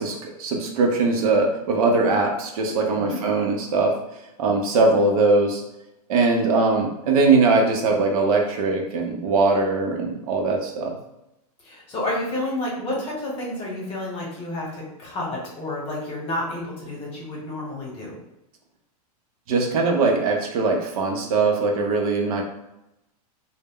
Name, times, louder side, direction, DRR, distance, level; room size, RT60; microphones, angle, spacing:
voice 1, 0.0-3.9 4.4-5.6 6.1-11.0 19.5-22.4, right 3 dB, 65° right, 1 dB, 0.6 m, -21 dB
voice 2, 11.6-18.1, left 1 dB, 30° left, -4 dB, 1.0 m, -30 dB
2.1 x 2.0 x 3.5 m, 0.89 s
hypercardioid pair, 125°, 20 cm